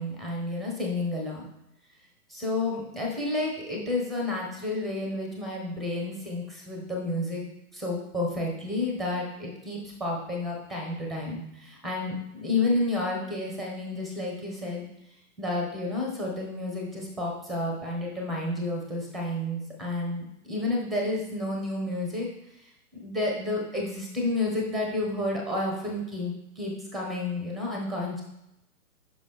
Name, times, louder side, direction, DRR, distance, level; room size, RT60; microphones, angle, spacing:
voice 1, 0.0-1.5 2.3-7.4 7.7-14.9 15.4-22.3 22.9-28.2, left 2 dB, ahead, 0 dB, 0.5 m, -30 dB
6.1 x 5.0 x 3.5 m, 0.85 s
hypercardioid pair, 130°, 44 cm